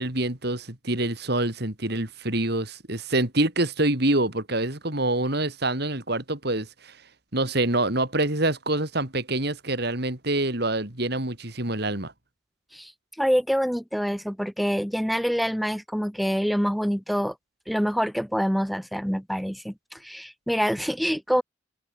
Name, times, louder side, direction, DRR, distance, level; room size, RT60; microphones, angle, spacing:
voice 1, 0.0-6.9 7.3-12.1, right 2 dB, 55° right, 3.8 m, -26 dB
voice 2, 13.2-17.3 17.7-21.4, equal, ahead, 3.6 m, -26 dB
head